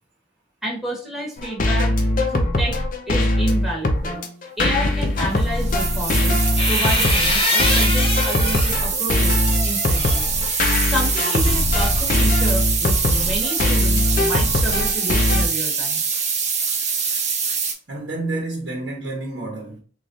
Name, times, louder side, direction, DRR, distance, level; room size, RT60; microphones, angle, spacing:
voice 1, 0.6-1.9 2.3-2.8 3.1-4.2 4.6-10.3 10.8-16.0, right 1 dB, ahead, 1.0 m, -29 dB
sound 1, 1.4-15.5, left 1 dB, 50° left, 0.6 m, -21 dB
sound 2, 5.3-17.7, right 6 dB, 40° right, 0.7 m, -24 dB
sound 3, 6.1-8.8 9.3-12.6, left 2 dB, 30° left, 1.1 m, -26 dB
voice 2, 17.9-19.8, right 2 dB, 70° right, 1.0 m, -29 dB
3.1 x 2.4 x 3.8 m
head